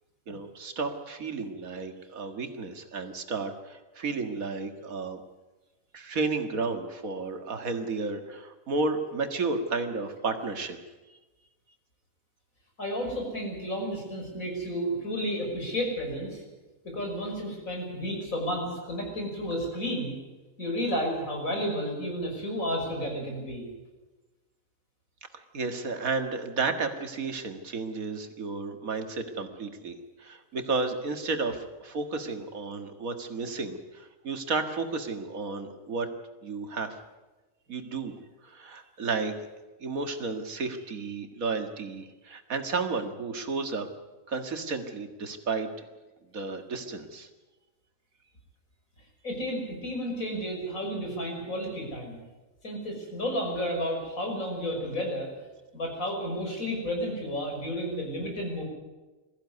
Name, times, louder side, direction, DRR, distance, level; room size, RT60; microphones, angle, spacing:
voice 1, 0.3-5.2 5.9-10.8 11.1-11.2 25.5-36.1 36.4-37.0 37.7-38.1 38.4-39.3 39.8-43.9 44.3-45.7 46.3-47.3, right 4 dB, 90° right, 6 dB, 2.2 m, -32 dB
voice 2, 12.8-16.4 16.8-20.2 20.6-23.7 49.2-52.2 52.6-55.3 55.7-58.6, equal, 80° left, 1 dB, 6.2 m, -32 dB
21.0 x 15.0 x 9.5 m, 1.2 s
omnidirectional pair, 1.4 m